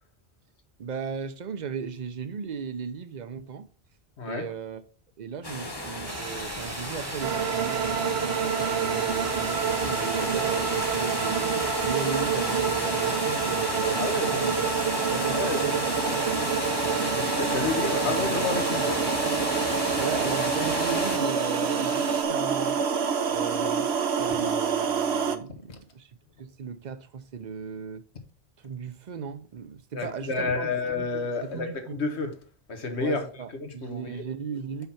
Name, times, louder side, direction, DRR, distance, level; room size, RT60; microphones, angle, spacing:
voice 1, 0.8-3.7 4.2-4.8 5.2-11.5 11.8-16.8 17.6-17.8 18.1-18.3 20.0-22.8 23.3-26.1 26.4-28.0 28.6-31.1 31.4-32.0 33.0-34.9, right 6 dB, 50° right, 0.7 m, -37 dB
voice 2, 4.2-4.5 14.0-14.4 15.3-15.8 17.0-19.1 25.7-25.8 29.9-32.3 32.7-33.2 33.6-34.2, left 3 dB, 85° left, 1.7 m, -30 dB
sound 1, 5.4-21.2, left 1 dB, 25° left, 1.3 m, -32 dB
sound 2, 6.1-22.2, right 3 dB, 25° right, 0.4 m, -39 dB
sound 3, 7.2-25.4, right 6 dB, 75° right, 1.1 m, -27 dB
5.8 x 5.7 x 5.8 m
omnidirectional pair, 1.1 m